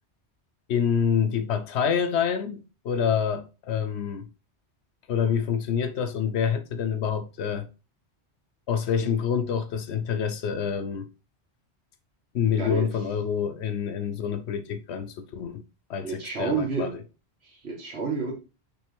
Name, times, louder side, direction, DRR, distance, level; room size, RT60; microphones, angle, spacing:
voice 1, 0.7-4.3 5.1-7.7 8.7-11.1 12.3-15.6 15.9-17.0, left 7 dB, 75° left, 0.9 m, -27 dB
voice 2, 12.6-12.9 16.0-16.9 17.4-18.3, right 5 dB, 65° right, 2.1 m, -30 dB
6.2 x 5.4 x 3.4 m
omnidirectional pair, 1.1 m